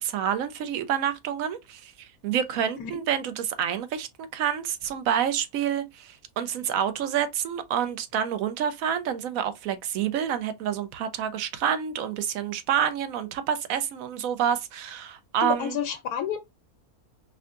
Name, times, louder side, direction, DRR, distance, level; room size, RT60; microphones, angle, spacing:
voice 1, 0.0-15.8, right 9 dB, 70° right, 1.1 m, -28 dB
voice 2, 15.4-16.4, left 8 dB, 85° left, 1.1 m, -29 dB
4.4 x 2.7 x 2.4 m
omnidirectional pair, 1.6 m